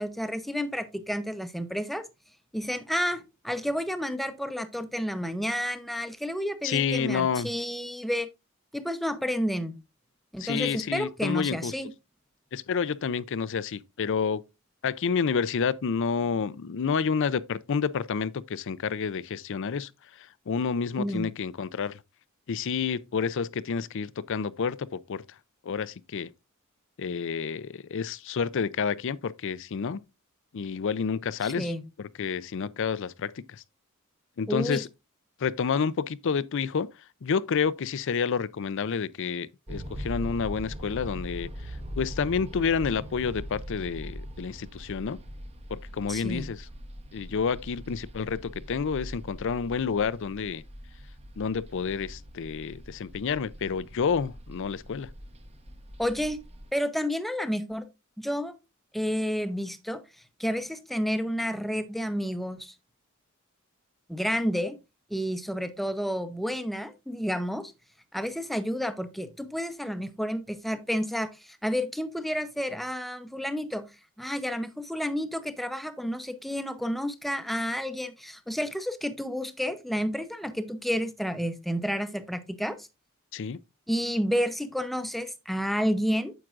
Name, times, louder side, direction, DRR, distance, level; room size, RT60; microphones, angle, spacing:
voice 1, 0.0-2.1 2.5-8.3 8.7-9.8 10.3-11.9 21.0-21.3 31.4-31.8 34.5-34.8 46.1-46.5 56.0-56.4 56.7-57.9 58.2-58.5 58.9-60.0 60.4-62.7 64.1-64.8 65.1-67.7 68.1-73.9 74.2-82.8 83.9-86.3, equal, ahead, 0.7 m, -30 dB
voice 2, 6.6-7.5 10.4-11.7 12.5-14.4 14.8-19.9 20.2-22.0 22.5-25.2 25.6-26.3 27.0-30.0 30.5-31.7 32.0-33.6 34.4-34.9 35.4-36.9 37.2-41.5 42.0-45.2 45.7-46.6 47.1-50.6 51.4-55.1 83.3-83.6, left 6 dB, 60° left, 0.5 m, -29 dB
sound 1, 39.7-56.7, equal, 30° right, 1.0 m, -41 dB
9.2 x 7.4 x 2.5 m
head